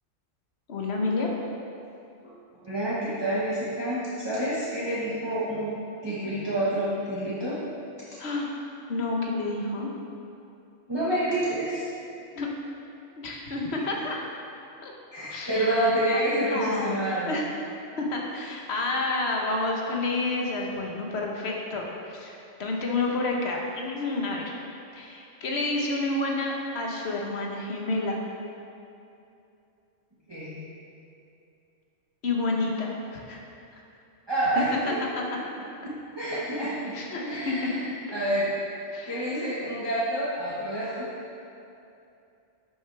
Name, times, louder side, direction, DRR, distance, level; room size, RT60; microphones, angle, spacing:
voice 1, 0.7-1.3 8.2-8.5 8.9-9.9 12.3-12.5 13.2-14.2 14.8-14.9 15.3-15.8 16.1-16.2 16.5-24.5 24.9-28.2 32.2-33.4 33.7-33.8 34.6-34.9 35.3-35.4 36.9-37.7 38.9-39.3, left 2 dB, 60° left, -1 dB, 1.3 m, -29 dB
voice 2, 2.6-5.7 6.0-7.6 10.9-11.9 15.1-17.4 30.3-30.6 34.3-35.0 35.8-37.8 38.1-38.5 39.1-41.1, right 1 dB, 20° right, -10 dB, 1.3 m, -28 dB
10.5 x 6.6 x 3.4 m, 2.7 s
omnidirectional pair, 1.3 m